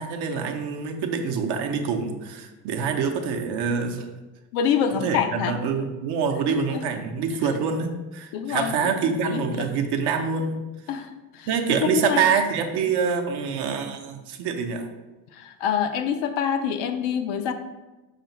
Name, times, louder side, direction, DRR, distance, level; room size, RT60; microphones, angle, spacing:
voice 1, 0.0-4.1 4.9-10.6 11.5-14.9, right 6 dB, 55° right, 4 dB, 0.6 m, -26 dB
voice 2, 4.5-5.5 7.5-7.6 8.3-9.7 10.9-11.5 11.8-12.2 15.3-17.5, left 8 dB, 60° left, 8 dB, 0.5 m, -26 dB
4.7 x 2.5 x 2.9 m, 1.1 s
hypercardioid pair, 70°, 49 cm